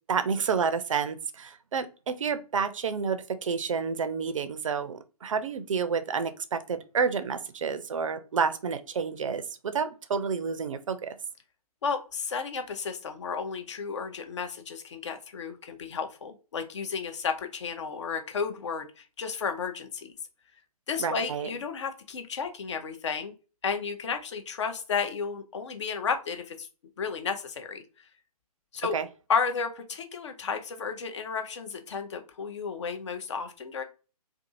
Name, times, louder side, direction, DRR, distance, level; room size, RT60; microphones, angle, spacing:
voice 1, 0.1-11.1 21.0-21.5 28.9-29.1, right 6 dB, 55° right, 10 dB, 0.4 m, -29 dB
voice 2, 11.8-20.1 20.9-23.3 23.6-26.7 27.0-27.8 28.7-29.0 29.3-33.8, left 5 dB, 50° left, 7 dB, 0.5 m, -32 dB
2.5 x 2.4 x 2.6 m, 0.34 s
figure-of-eight pair, 130°, 20 cm